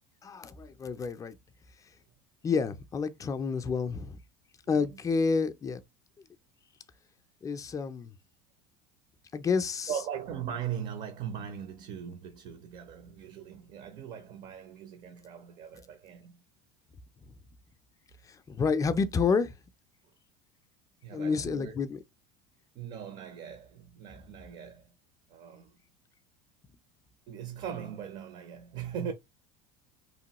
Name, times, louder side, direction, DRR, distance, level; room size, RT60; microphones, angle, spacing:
voice 1, 0.2-1.4 2.4-4.2 4.7-5.8 7.4-8.1 9.3-9.9 18.3-19.6 21.1-22.0, left 5 dB, 20° left, 0.4 m, -29 dB
voice 2, 4.6-5.0 9.9-16.4 21.0-21.8 22.7-24.9 25.3-25.8 27.3-29.1, right 8 dB, 50° right, 0.5 m, -40 dB
3.0 x 2.2 x 2.9 m
supercardioid pair, 115°, 16 cm